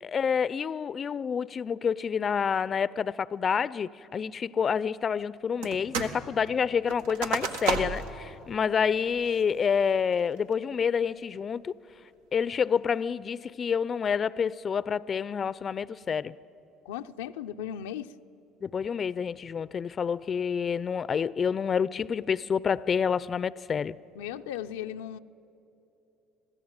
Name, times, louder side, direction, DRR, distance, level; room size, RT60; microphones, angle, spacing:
voice 1, 0.0-11.7 12.3-16.3 18.6-24.0, left 6 dB, 40° left, 0.5 m, -28 dB
sound 1, 5.6-6.2 6.5-8.2 8.6-8.7 9.2-9.6 10.1-10.5, right 4 dB, 90° right, 1.5 m, -32 dB
voice 2, 16.8-18.1 24.2-25.2, left 10 dB, 90° left, 0.5 m, -36 dB
26.5 x 16.5 x 8.9 m
supercardioid pair, 80°, 0 cm